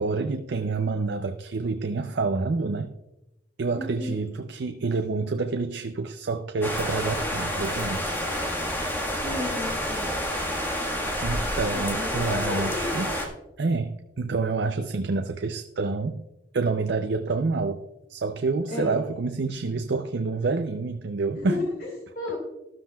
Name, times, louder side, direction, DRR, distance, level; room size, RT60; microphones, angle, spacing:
voice 1, 0.0-2.9 3.6-8.3 11.2-13.1 13.6-16.2 16.5-17.8 18.1-21.6, right 3 dB, 80° right, 7 dB, 0.5 m, -28 dB
voice 2, 3.8-4.2 9.2-10.1 11.7-13.0 18.7-19.0 21.4-21.9 22.1-22.3, left 2 dB, 55° left, -2 dB, 2.5 m, -32 dB
sound 1, 6.6-13.3, equal, 15° left, 1.6 m, -29 dB
13.0 x 12.5 x 2.3 m, 0.94 s
head